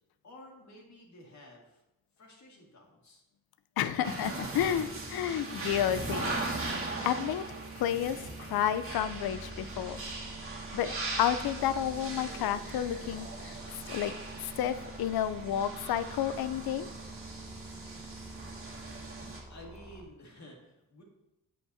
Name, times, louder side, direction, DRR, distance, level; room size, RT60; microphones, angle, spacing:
voice 1, 0.2-1.8 2.2-3.2 3.9-4.1 19.5-21.0, left 1 dB, 50° left, 0 dB, 2.0 m, -52 dB
voice 2, 3.8-6.4 7.0-7.5 7.8-10.0 10.7-16.9, left 10 dB, 85° left, 13 dB, 0.6 m, -31 dB
sound 1, 4.0-19.4, right 3 dB, 35° right, 2.0 m, -39 dB
sound 2, 8.9-20.0, equal, 5° right, 1.1 m, -49 dB
8.3 x 8.0 x 2.7 m, 0.91 s
cardioid pair, 110°, 36 cm